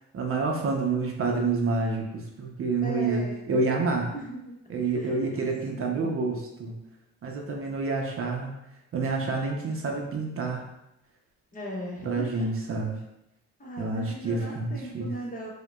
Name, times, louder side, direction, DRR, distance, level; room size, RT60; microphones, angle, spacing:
voice 1, 0.1-4.1 4.7-6.8 7.2-8.5 8.9-10.7 12.0-13.0 13.8-15.1, right 3 dB, 45° right, 1 dB, 0.6 m, -28 dB
voice 2, 2.8-3.4 4.1-4.6 5.0-5.2 5.8-6.2 11.5-12.5 13.6-15.5, right 1 dB, 30° left, -3 dB, 0.9 m, -37 dB
4.6 x 2.2 x 2.3 m, 0.86 s
cardioid pair, 90°, 30 cm